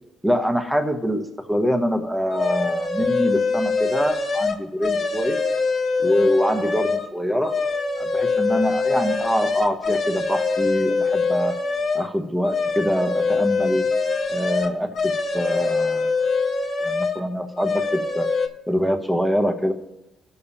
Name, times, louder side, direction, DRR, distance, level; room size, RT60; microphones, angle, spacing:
voice 1, 0.2-5.4 6.0-7.5 8.0-11.5 11.9-13.9 14.3-16.1 16.8-18.3 18.7-19.7, equal, 5° right, 4 dB, 1.0 m, -24 dB
sound 1, 2.3-7.1 7.4-12.1 12.4-17.2 17.5-18.5, left 4 dB, 55° left, 1.3 m, -24 dB
19.0 x 7.0 x 2.8 m, 0.92 s
cardioid pair, 90°, 0 cm